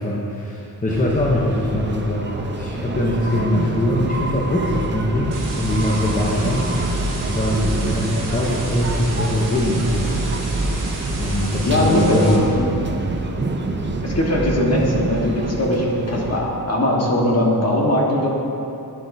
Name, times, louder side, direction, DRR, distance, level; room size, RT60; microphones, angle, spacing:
voice 1, 0.0-10.6 11.2-12.9, left 1 dB, 20° left, -4 dB, 0.7 m, -22 dB
sound 1, 0.9-16.4, right 2 dB, 30° right, 0.5 m, -26 dB
sound 2, 5.3-12.4, right 2 dB, 55° right, 1.6 m, -34 dB
voice 2, 11.6-12.7 14.0-18.3, left 1 dB, 40° left, -3 dB, 1.4 m, -20 dB
12.0 x 9.4 x 2.7 m, 2.9 s
wide cardioid pair, 170°, 39 cm